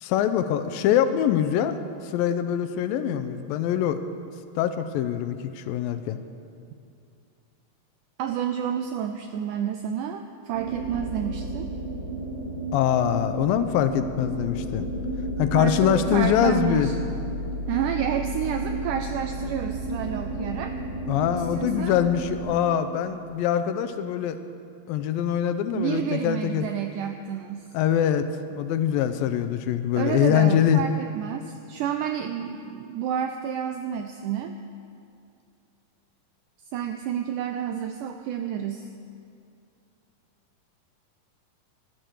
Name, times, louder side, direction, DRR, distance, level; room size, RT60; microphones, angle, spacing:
voice 1, 0.0-1.8 2.0-4.0 4.6-6.2 12.7-14.9 15.4-16.9 21.1-24.4 24.9-26.6 27.7-28.3 28.6-30.8, left 10 dB, 85° left, 9 dB, 2.3 m, -23 dB
voice 2, 8.2-11.7 15.5-17.0 17.7-20.8 21.3-22.0 25.7-27.7 30.0-34.6 36.7-38.9, right 9 dB, 85° right, 7 dB, 1.8 m, -30 dB
sound 1, 10.5-22.4, right 1 dB, 55° right, 4.8 m, -32 dB
14.5 x 12.5 x 6.5 m, 2.5 s
omnidirectional pair, 4.2 m